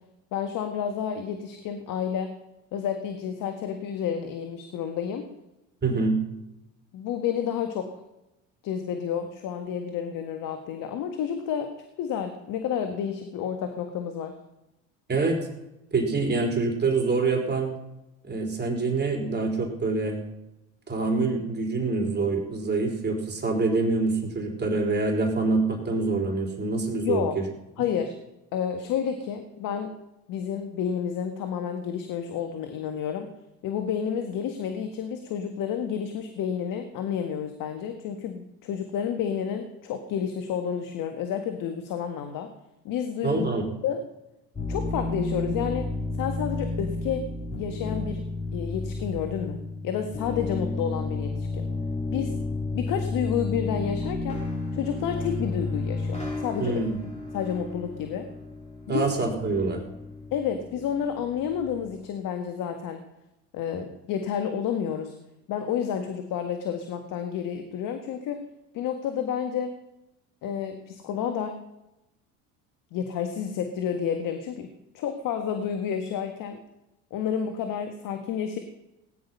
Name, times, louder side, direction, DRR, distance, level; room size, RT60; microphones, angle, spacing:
voice 1, 0.3-2.3 2.7-5.3 6.9-8.0 8.6-11.7 12.0-14.4 27.0-27.4 27.8-28.2 28.5-29.9 30.3-33.3 33.6-42.5 42.9-43.5 43.8-44.0 44.7-45.9 46.2-47.3 47.6-48.2 48.5-49.6 49.8-51.7 52.1-52.3 52.7-54.4 54.7-56.8 57.3-58.3 58.9-59.1 60.3-63.0 63.5-65.1 65.5-68.4 68.7-69.8 70.4-71.6 72.9-74.7 74.9-76.6 77.1-78.6, left 8 dB, 60° left, 6 dB, 1.8 m, -30 dB
voice 2, 5.8-6.2 15.1-15.4 15.9-17.7 18.2-20.2 20.9-27.4 43.2-43.6 56.6-56.9 58.9-59.8, right 3 dB, 30° right, 2 dB, 4.3 m, -25 dB
sound 1, 44.5-61.9, left 3 dB, 20° left, 6.1 m, -32 dB
18.0 x 10.5 x 5.6 m, 0.91 s
supercardioid pair, 80°, 36 cm